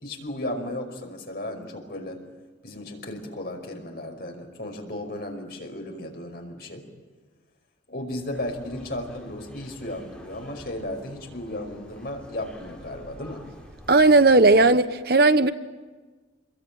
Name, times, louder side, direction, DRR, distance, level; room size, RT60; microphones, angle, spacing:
voice 1, 0.0-2.2 2.6-6.9 7.9-13.4, left 1 dB, 55° left, 5.4 m, -35 dB
sound 1, 8.3-14.7, equal, 5° left, 6.3 m, -47 dB
voice 2, 13.9-15.5, right 3 dB, 55° right, 1.1 m, -16 dB
27.0 x 22.5 x 9.0 m
head